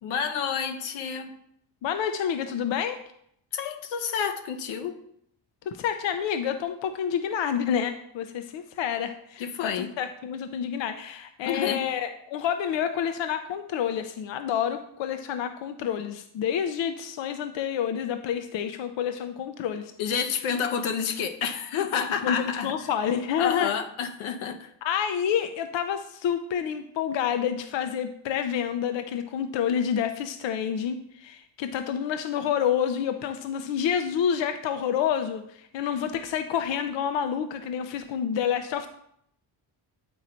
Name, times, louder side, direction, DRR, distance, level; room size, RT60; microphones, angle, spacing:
voice 1, 0.0-1.3 3.5-5.0 9.4-9.9 11.5-11.9 20.0-22.7 23.4-24.7, left 7 dB, 90° left, 7 dB, 1.0 m, -29 dB
voice 2, 1.8-3.0 5.7-19.9 22.2-23.7 24.8-38.9, left 8 dB, 70° left, 8 dB, 0.7 m, -28 dB
9.5 x 3.9 x 4.4 m, 0.71 s
cardioid pair, 95°, 47 cm